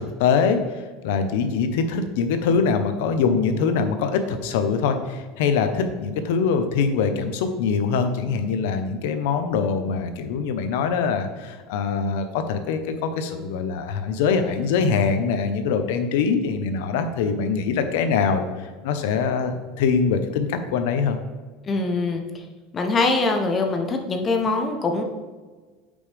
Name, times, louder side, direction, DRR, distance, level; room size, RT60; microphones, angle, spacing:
voice 1, 0.0-21.2, left 5 dB, 75° left, 8 dB, 0.9 m, -23 dB
voice 2, 21.7-22.2 22.7-25.0, left 3 dB, 20° left, 4 dB, 0.7 m, -23 dB
8.6 x 5.3 x 3.4 m, 1.4 s
cardioid pair, 160°, 0 cm